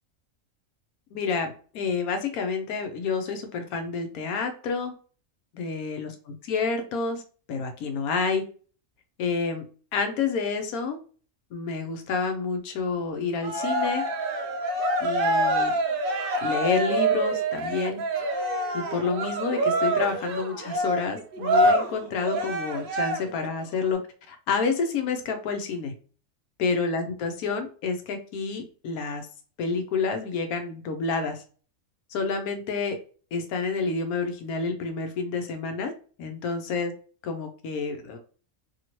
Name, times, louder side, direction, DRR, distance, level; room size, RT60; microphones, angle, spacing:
voice 1, 1.1-4.9 5.5-7.2 7.5-8.4 9.2-9.6 9.9-11.0 11.5-14.0 15.0-15.7 16.4-18.0 18.7-24.0 24.3-25.9 26.6-29.3 29.6-31.4 32.1-33.0 33.3-35.9 36.2-36.9 37.2-38.2, left 4 dB, 90° left, 6 dB, 1.1 m, -29 dB
Cheering, 13.4-23.5, right 1 dB, 85° right, 0.4 m, -26 dB
2.8 x 2.7 x 2.9 m, 0.40 s
omnidirectional pair, 1.5 m